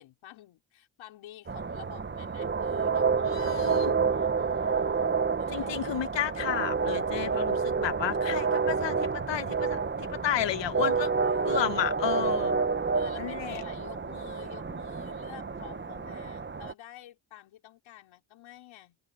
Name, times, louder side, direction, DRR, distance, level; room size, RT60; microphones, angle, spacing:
voice 1, 0.0-5.8 11.2-11.9 12.9-19.0, left 13 dB, 80° left, 4.2 m, -51 dB
sound 1, 1.5-16.7, right 5 dB, 25° right, 1.2 m, -29 dB
voice 2, 3.2-3.9 5.5-11.1 11.4-12.6 13.2-13.6, left 11 dB, 65° left, 1.5 m, -32 dB
sound 2, 6.3-16.3, left 4 dB, 25° left, 6.2 m, -55 dB
supercardioid pair, 65°, 46 cm